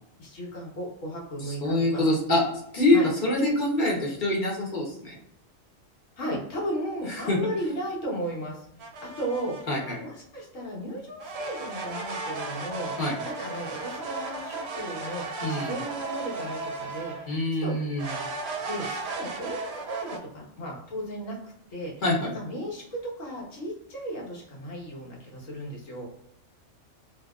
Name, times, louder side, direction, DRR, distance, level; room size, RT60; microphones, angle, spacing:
voice 1, 0.2-2.1 2.9-3.1 6.2-8.6 9.0-9.7 10.0-12.9 13.2-17.8 18.7-21.4 21.7-22.0 22.3-26.1, equal, 85° left, -3 dB, 1.4 m, -35 dB
voice 2, 1.4-2.4 2.7-5.2 7.3-7.4 9.7-10.0 13.0-13.1 15.4-15.7 17.3-18.1 22.0-22.3, left 1 dB, 45° left, -2 dB, 1.0 m, -25 dB
sound 1, 8.8-10.0 11.2-17.3 18.0-20.2, right 3 dB, 65° right, 0.8 m, -35 dB
2.8 x 2.7 x 2.3 m, 0.77 s
omnidirectional pair, 1.3 m